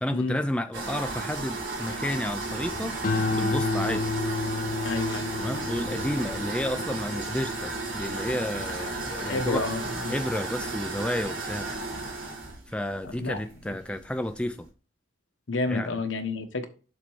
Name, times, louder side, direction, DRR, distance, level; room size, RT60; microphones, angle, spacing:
voice 1, 0.0-2.9 3.3-4.1 5.4-9.6 10.1-11.7 12.7-14.7 15.7-16.0, left 1 dB, 5° left, 0.3 m, -31 dB
sound 1, 0.7-14.7, right 2 dB, 75° right, 3.3 m, -34 dB
sound 2, 3.0-9.6 10.0-10.5, left 3 dB, 40° left, 0.8 m, -31 dB
voice 2, 4.8-5.3 8.7-8.8 9.1-10.2 13.0-13.8 15.5-16.7, left 3 dB, 70° left, 1.1 m, -30 dB
6.7 x 4.2 x 4.6 m
head